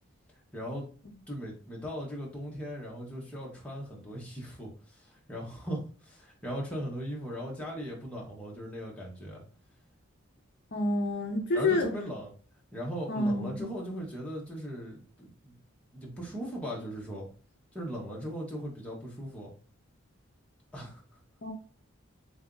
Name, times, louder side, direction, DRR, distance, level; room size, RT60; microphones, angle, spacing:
voice 1, 0.5-0.9 1.3-9.4 11.5-12.3 12.7-15.5 15.9-17.3 17.7-19.5 20.7-21.0, equal, 5° left, 1.0 m, -38 dB
voice 2, 10.7-11.9 13.1-13.7 21.4-21.5, left 2 dB, 55° left, 0.6 m, -28 dB
3.5 x 2.7 x 3.7 m
head